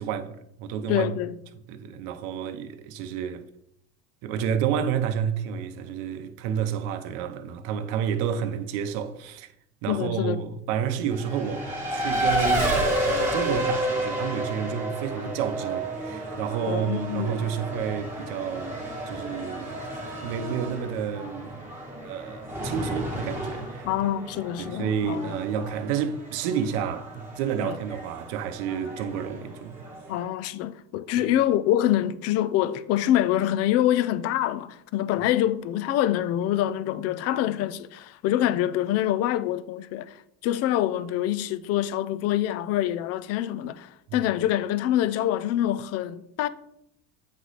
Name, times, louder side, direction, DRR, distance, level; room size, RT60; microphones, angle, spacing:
voice 1, 0.0-1.1 1.7-3.4 4.2-9.5 9.8-12.7 13.0-19.8 20.2-21.5 21.8-23.9 24.6-29.8 31.2-31.4 44.1-44.2, right 8 dB, 70° right, 0.8 m, -30 dB
voice 2, 0.9-1.4 9.9-10.4 16.7-17.5 23.8-25.3 27.6-27.8 30.1-40.2 40.4-46.5, left 12 dB, 40° left, 0.4 m, -25 dB
Race car auto racing, 11.1-30.2, right 1 dB, 5° right, 1.6 m, -31 dB
8.4 x 3.1 x 4.0 m
supercardioid pair, 125°, 38 cm